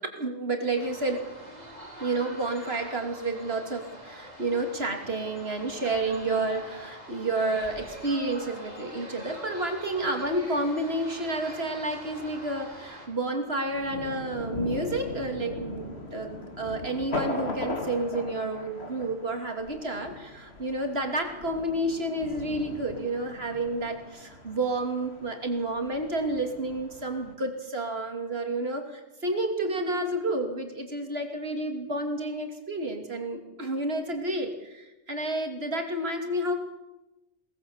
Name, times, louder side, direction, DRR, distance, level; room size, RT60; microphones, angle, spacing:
voice 1, 0.1-1.2 2.0-36.6, right 2 dB, 50° right, 4 dB, 3.1 m, -30 dB
sound 1, 0.7-13.1, equal, 30° right, 5.4 m, -44 dB
Thunder, 11.2-27.3, left 2 dB, 55° left, 3.0 m, -39 dB
22.0 x 19.0 x 7.3 m, 1.0 s
omnidirectional pair, 1.3 m